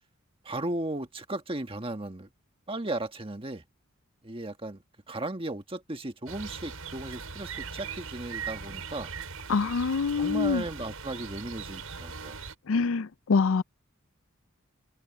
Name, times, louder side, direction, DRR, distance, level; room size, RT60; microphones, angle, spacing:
voice 1, 0.4-2.3 2.7-3.6 4.2-9.1 10.1-12.4, right 2 dB, 25° right, 1.7 m, -36 dB
sound 1, 6.3-12.5, right 5 dB, 85° right, 6.9 m, -40 dB
voice 2, 9.5-10.6 12.7-13.6, left 4 dB, 65° left, 0.5 m, -25 dB
head